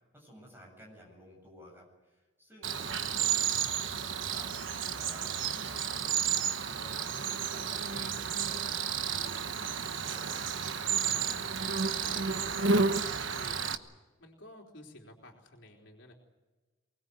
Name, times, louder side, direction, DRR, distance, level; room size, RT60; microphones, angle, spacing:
voice 1, 0.1-6.3 6.6-10.5, equal, 10° right, 0 dB, 8.0 m, -53 dB
Cricket, 2.6-13.8, right 6 dB, 80° right, 1.2 m, -31 dB
voice 2, 5.7-6.0 10.9-13.7 14.2-16.1, left 1 dB, 65° left, 0 dB, 3.8 m, -51 dB
23.5 x 20.5 x 8.0 m, 1.2 s
head